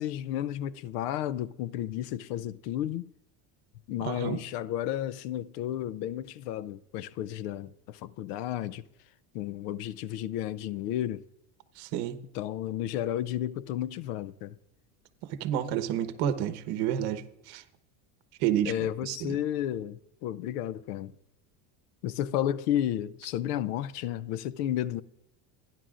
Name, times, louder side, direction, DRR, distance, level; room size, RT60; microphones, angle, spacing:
voice 1, 0.0-3.1 3.9-8.9 9.3-11.2 12.3-14.6 18.7-21.2 22.0-25.0, left 11 dB, 75° left, 0.7 m, -32 dB
voice 2, 4.0-4.4 11.8-12.2 15.4-17.6 18.4-18.7 19.0-19.4, right 10 dB, 55° right, 1.1 m, -30 dB
28.5 x 10.5 x 2.5 m
cardioid pair, 160°, 47 cm